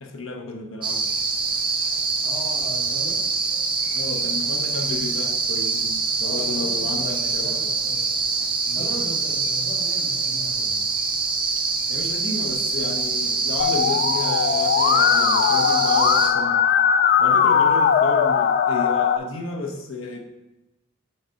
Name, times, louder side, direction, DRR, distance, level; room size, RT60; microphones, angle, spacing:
voice 1, 0.0-1.1 3.9-7.8 11.9-16.7 17.2-20.2, left 2 dB, 70° left, 3 dB, 1.0 m, -32 dB
sound 1, 0.8-16.3, right 4 dB, 25° right, 0.5 m, -25 dB
voice 2, 2.2-3.2 6.2-8.3 8.6-10.8, right 1 dB, 20° left, -14 dB, 2.3 m, -38 dB
Musical instrument, 13.6-19.2, left 7 dB, 50° left, 0.3 m, -19 dB
6.6 x 4.0 x 4.5 m, 0.99 s
head